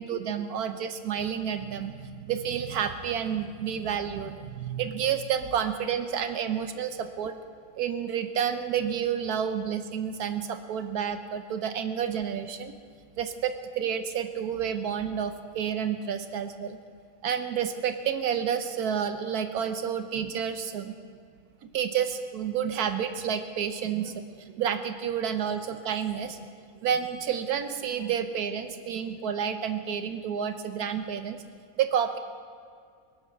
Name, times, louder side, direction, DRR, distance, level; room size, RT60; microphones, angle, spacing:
voice 1, 0.0-7.3 7.7-12.7 13.2-16.8 17.2-20.9 21.7-26.4 26.8-31.4 31.8-32.2, right 8 dB, 80° right, 8 dB, 1.3 m, -30 dB
24.0 x 8.6 x 6.0 m, 2.2 s
omnidirectional pair, 1.6 m